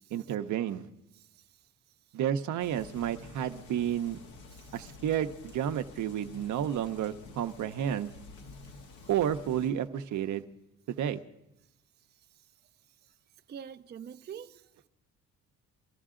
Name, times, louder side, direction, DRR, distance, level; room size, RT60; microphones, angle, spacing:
voice 1, 0.1-0.9 2.1-4.2 4.7-8.1 9.1-10.4 10.9-11.2, right 10 dB, 75° right, 0.8 m, -31 dB
sound 1, 2.6-9.7, left 3 dB, 85° left, 1.4 m, -50 dB
voice 2, 13.5-14.9, right 8 dB, 35° right, 0.5 m, -46 dB
23.5 x 13.5 x 3.7 m
cardioid pair, 90°, 30 cm